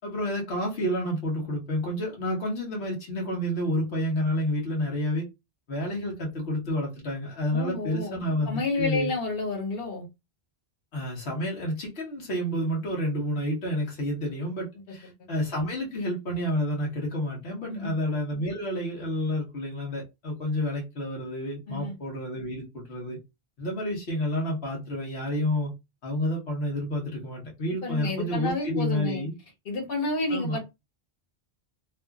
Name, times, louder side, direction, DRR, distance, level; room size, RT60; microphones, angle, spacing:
voice 1, 0.0-5.2 5.7-9.1 10.9-23.2 23.6-25.7 26.0-29.3 30.3-30.6, equal, 85° left, 1.2 m, -29 dB
voice 2, 7.5-8.1 8.5-10.1 17.7-17.9 21.7-21.9 27.8-29.2 29.6-30.6, left 2 dB, 65° left, 1.2 m, -30 dB
2.7 x 2.4 x 2.3 m
omnidirectional pair, 1.1 m